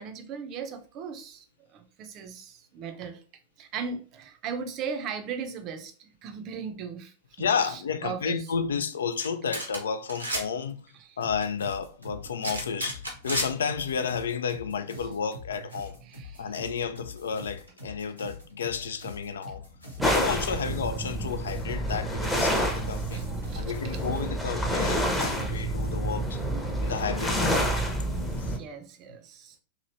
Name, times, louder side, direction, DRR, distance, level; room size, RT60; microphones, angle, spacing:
voice 1, 0.0-1.4 1.7-3.2 3.6-8.5 10.9-11.2 15.0-15.1 16.0-16.5 20.0-20.8 23.1-24.0 28.5-29.6, right 6 dB, 35° right, 0.5 m, -38 dB
voice 2, 7.4-16.0 16.4-19.6 20.0-23.2 23.6-26.4 26.8-27.8 28.4-28.6, left 6 dB, 65° left, 0.3 m, -31 dB
sound 1, 9.2-9.3 9.5-9.8 10.1-10.4 12.4-13.5, right 1 dB, 85° right, 0.8 m, -31 dB
sound 2, 11.2-24.3, left 2 dB, 90° left, 1.0 m, -45 dB
sound 3, 20.0-28.6, right 1 dB, 5° left, 0.7 m, -28 dB
2.9 x 2.7 x 2.6 m
figure-of-eight pair, 90°, 0 cm